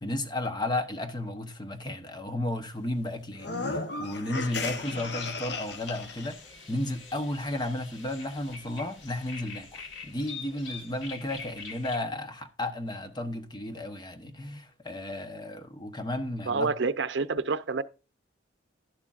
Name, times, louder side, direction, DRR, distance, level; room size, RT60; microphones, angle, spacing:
voice 1, 0.0-6.4 6.7-16.7, left 1 dB, 25° left, 0.9 m, -33 dB
sound 1, 3.3-6.3, left 3 dB, 60° left, 1.0 m, -35 dB
sound 2, 4.4-12.0, left 4 dB, 80° left, 1.9 m, -45 dB
voice 2, 16.5-17.8, right 4 dB, 70° right, 0.6 m, -28 dB
11.5 x 11.0 x 2.5 m
head